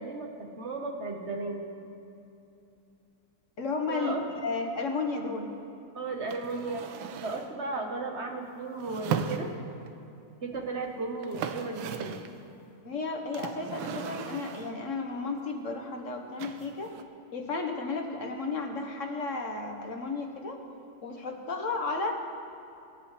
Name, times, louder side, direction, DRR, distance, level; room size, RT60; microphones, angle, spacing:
voice 1, 0.0-1.7 3.9-4.2 5.9-6.8 7.2-9.5 10.4-12.1, right 3 dB, 40° right, 2 dB, 1.3 m, -35 dB
voice 2, 3.6-5.5 12.8-16.9 17.3-20.6 21.0-22.1, left 3 dB, 45° left, 2 dB, 1.4 m, -33 dB
sound 1, 6.3-7.6 8.8-9.9 10.8-10.9 11.1-12.4 13.3-14.8 16.4-17.0, right 7 dB, 80° right, 1.5 m, -36 dB
24.0 x 11.0 x 3.3 m, 2.7 s
omnidirectional pair, 2.2 m